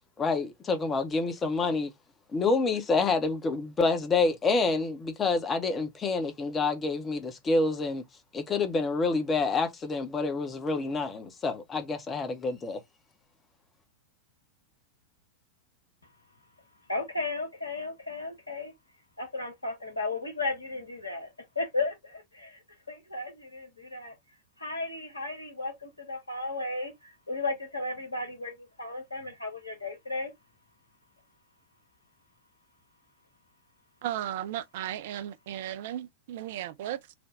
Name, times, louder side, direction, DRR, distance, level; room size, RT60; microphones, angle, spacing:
voice 1, 0.2-1.9 2.3-8.0 8.3-12.8, left 3 dB, 20° left, 0.7 m, -28 dB
voice 2, 16.9-18.7 19.2-24.1 24.6-30.3, left 3 dB, 80° left, 1.1 m, -35 dB
voice 3, 34.0-37.1, right 12 dB, 55° right, 0.3 m, -35 dB
3.3 x 2.1 x 3.6 m
figure-of-eight pair, 90°, 0 cm